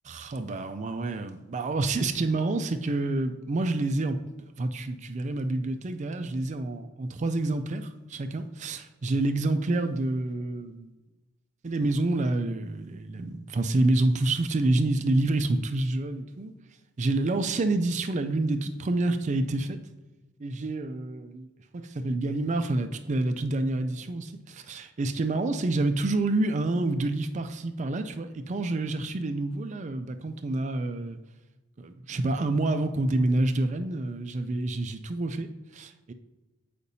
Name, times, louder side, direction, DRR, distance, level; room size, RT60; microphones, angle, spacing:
voice 1, 0.1-4.2 4.6-11.0 11.6-16.5 17.0-19.8 20.4-21.5 21.7-31.2 31.8-36.1, right 2 dB, 35° right, 9 dB, 0.4 m, -28 dB
8.3 x 5.0 x 2.7 m, 1.1 s
head